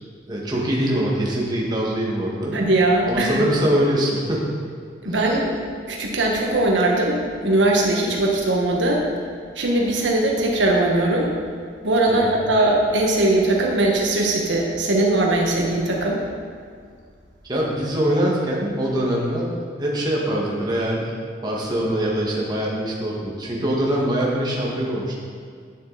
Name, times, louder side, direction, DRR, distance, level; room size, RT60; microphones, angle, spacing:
voice 1, 0.3-2.6 3.1-4.6 5.0-5.1 12.1-12.3 17.5-21.1 21.4-25.1, right 1 dB, 20° right, -4 dB, 1.8 m, -23 dB
voice 2, 2.5-3.5 5.0-5.5 5.9-9.0 9.5-11.3 11.8-16.2, right 2 dB, 75° right, -1 dB, 1.5 m, -20 dB
11.0 x 9.0 x 4.1 m, 2.1 s
head